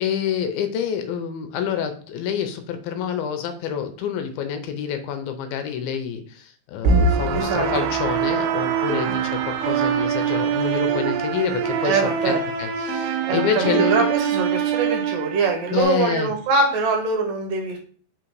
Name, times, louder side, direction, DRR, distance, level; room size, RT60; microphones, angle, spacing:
voice 1, 0.0-14.0 15.7-16.3, left 8 dB, 80° left, 7 dB, 2.5 m, -27 dB
sound 1, 6.8-15.8, right 6 dB, 90° right, 2.7 m, -23 dB
voice 2, 7.3-7.9 9.0-9.2 11.8-12.4 13.3-17.8, right 4 dB, 70° right, 3 dB, 2.6 m, -23 dB
5.7 x 3.7 x 4.6 m, 0.42 s
omnidirectional pair, 4.4 m